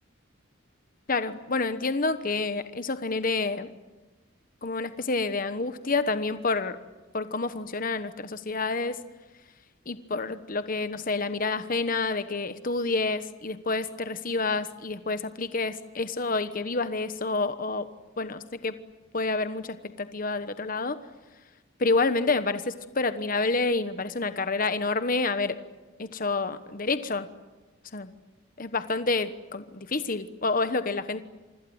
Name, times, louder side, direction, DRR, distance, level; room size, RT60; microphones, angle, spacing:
voice 1, 1.1-3.7 4.6-6.8 7.1-9.0 9.9-17.9 18.2-18.7 19.1-21.0 21.8-25.6 26.0-27.3 27.9-28.1 28.6-31.2, left 3 dB, 45° left, 11 dB, 1.1 m, -28 dB
29.5 x 25.5 x 8.0 m, 1.2 s
head